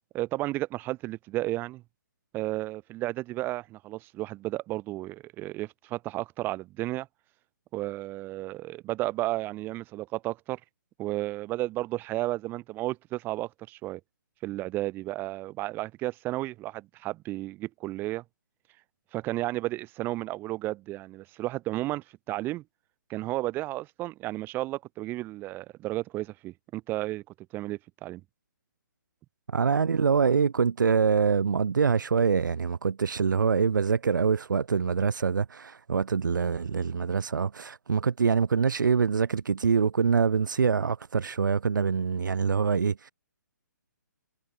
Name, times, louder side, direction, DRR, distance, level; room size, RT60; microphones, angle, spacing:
voice 1, 0.1-1.8 2.3-7.1 7.7-10.6 11.0-14.0 14.4-18.2 19.1-22.6 23.1-27.2 27.5-28.2, right 17 dB, 20° right, 3.1 m, -33 dB
voice 2, 29.5-43.1, right 6 dB, 80° right, 0.8 m, -25 dB
hypercardioid pair, 150°, 10 cm